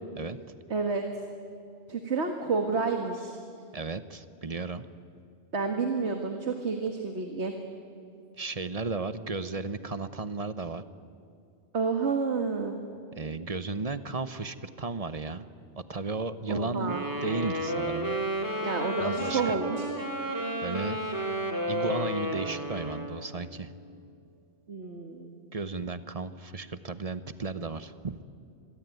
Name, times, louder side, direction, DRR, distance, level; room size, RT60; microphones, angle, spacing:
voice 1, 0.7-1.1 1.9-3.4 5.5-7.5 11.7-12.8 16.5-17.0 18.6-19.9 24.7-25.3, right 4 dB, 75° right, 4 dB, 2.0 m, -30 dB
voice 2, 3.7-4.9 8.4-10.8 13.2-15.5 15.7-18.2 18.6-18.7 19.0-19.6 20.6-21.0 21.7-23.7 25.5-28.2, right 3 dB, 35° right, 12 dB, 1.0 m, -34 dB
Wind instrument woodwind instrument, 16.8-23.3, equal, 15° right, 2.6 m, -32 dB
27.5 x 22.0 x 9.3 m, 2.5 s
omnidirectional pair, 1.2 m